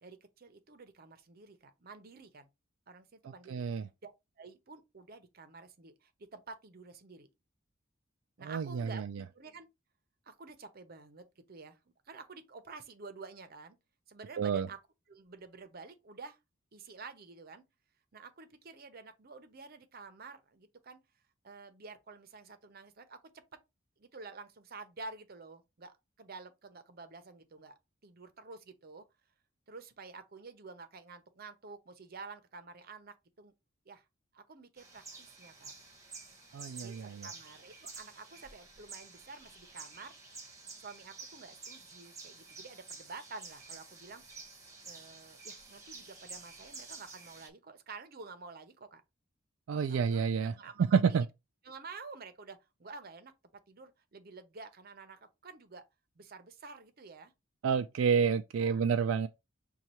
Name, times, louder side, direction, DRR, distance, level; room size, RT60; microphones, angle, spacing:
voice 1, 0.0-2.5 2.9-3.7 4.0-4.1 4.4-7.3 8.4-9.0 9.3-9.7 10.2-11.8 12.1-13.8 14.1-14.8 15.1-16.4 16.7-17.6 18.1-21.0 21.4-23.4 24.0-29.0 29.7-33.5 33.9-34.0 34.3-35.7 36.8-40.1 40.8-44.2 44.8-49.0 49.9-51.3 51.6-55.8 56.2-57.3 58.6-59.0, right 4 dB, 50° right, 0.7 m, -50 dB
voice 2, 3.5-3.8 8.4-8.9 14.4-14.7 36.5-37.3 49.7-50.5 50.8-51.3 57.6-59.3, right 6 dB, 80° right, 0.3 m, -29 dB
sound 1, 34.8-47.5, right 4 dB, 15° right, 1.2 m, -50 dB
6.4 x 2.3 x 2.9 m
head